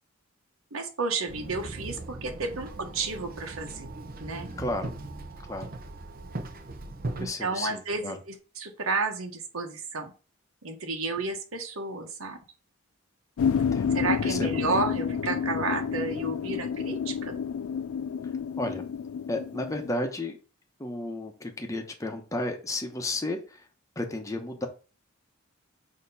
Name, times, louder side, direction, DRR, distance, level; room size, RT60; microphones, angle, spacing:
voice 1, 0.7-3.9 4.2-4.5 7.2-10.1 10.6-12.4 13.9-17.3, right 3 dB, 85° right, 4 dB, 1.3 m, -32 dB
Walk footsteps / Chatter / Hiss, 1.3-7.2, right 2 dB, 45° right, 0.9 m, -39 dB
voice 2, 4.6-4.9 5.5-5.7 7.2-8.2 13.5-14.8 18.6-18.8 19.3-20.4 20.8-23.7 24.0-24.7, left 2 dB, 15° left, 3 dB, 1.0 m, -33 dB
sound 1, 13.4-19.9, left 7 dB, 85° left, 0.4 m, -29 dB
6.5 x 3.0 x 5.5 m, 0.34 s
head